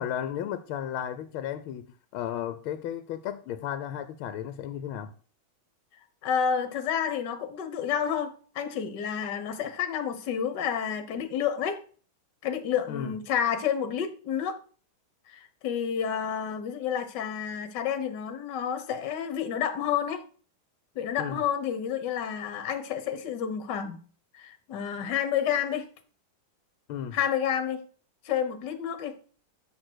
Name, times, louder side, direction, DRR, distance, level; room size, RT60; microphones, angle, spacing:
voice 1, 0.0-5.1 12.9-13.1 21.2-21.4 26.9-27.2, left 10 dB, 80° left, 1.5 m, -34 dB
voice 2, 6.2-11.8 12.4-14.6 15.3-20.2 20.9-24.0 24.3-25.9 27.1-27.8 28.2-29.2, left 8 dB, 60° left, 1.6 m, -30 dB
6.6 x 6.3 x 6.2 m
omnidirectional pair, 2.3 m